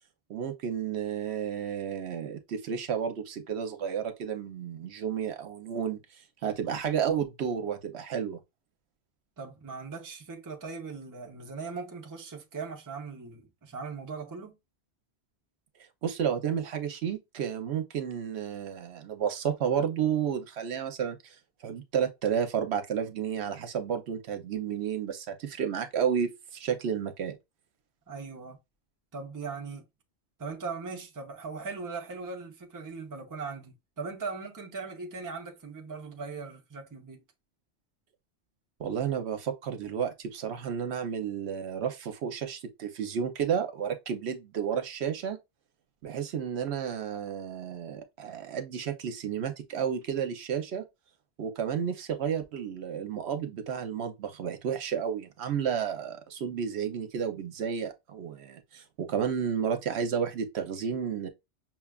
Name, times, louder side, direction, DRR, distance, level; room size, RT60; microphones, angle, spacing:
voice 1, 0.3-6.0 6.4-8.4 16.0-21.2 21.6-27.4 38.8-45.4 46.0-50.8 51.4-61.3, right 8 dB, 70° right, 0.9 m, -31 dB
voice 2, 9.4-14.6 28.1-28.6 29.1-29.8 30.4-37.2, right 4 dB, 20° right, 0.6 m, -39 dB
5.8 x 2.3 x 2.3 m
omnidirectional pair, 1.1 m